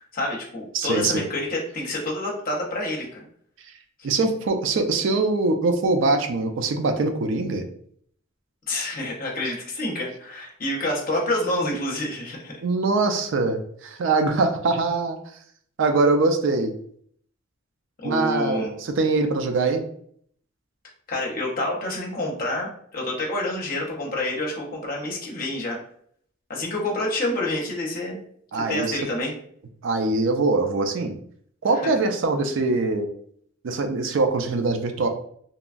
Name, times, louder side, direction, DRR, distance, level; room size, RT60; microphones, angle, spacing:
voice 1, 0.0-3.2 8.7-12.5 18.0-18.7 21.1-25.8 26.5-28.2 28.5-29.3, left 1 dB, 45° left, -1 dB, 0.7 m, -28 dB
voice 2, 0.7-1.2 4.0-7.6 12.6-15.2 15.8-16.7 18.0-19.8 28.5-29.0 29.8-31.2 31.6-33.1 33.6-35.1, right 3 dB, 65° right, 6 dB, 0.4 m, -23 dB
2.9 x 2.2 x 2.4 m, 0.63 s
head